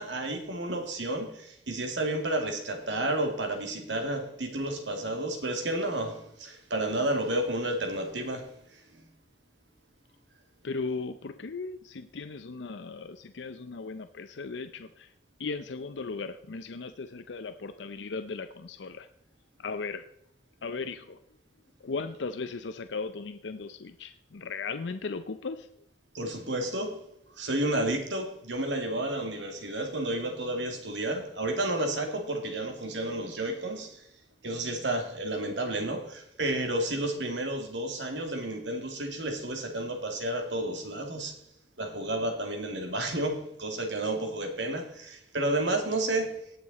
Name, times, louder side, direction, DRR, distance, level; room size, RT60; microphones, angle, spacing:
voice 1, 0.0-9.0 26.1-27.0 27.3-34.0 34.4-41.4 41.8-46.4, right 1 dB, 90° right, 2.3 m, -31 dB
voice 2, 10.6-15.1 15.4-19.1 19.6-20.1 20.6-21.2 21.8-25.7, left 4 dB, 80° left, 0.6 m, -37 dB
18.0 x 6.8 x 4.1 m
head